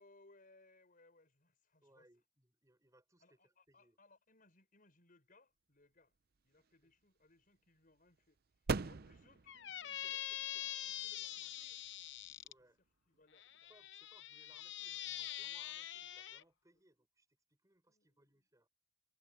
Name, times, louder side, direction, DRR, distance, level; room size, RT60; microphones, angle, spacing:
voice 1, 0.0-2.1 3.2-6.1 6.4-10.3 10.6-11.8 13.1-13.7 14.5-14.7 16.7-16.8 17.9-18.4, left 2 dB, 45° left, 5.9 m, -68 dB
voice 2, 1.8-4.0 6.8-6.9 10.0-10.2 10.5-10.8 12.4-12.8 13.7-18.7, right 1 dB, 20° right, 6.4 m, -70 dB
sound 1, 6.0-13.3, right 4 dB, 55° right, 0.6 m, -46 dB
Squeak, 9.5-12.5 13.4-16.4, left 13 dB, 65° left, 0.8 m, -44 dB
head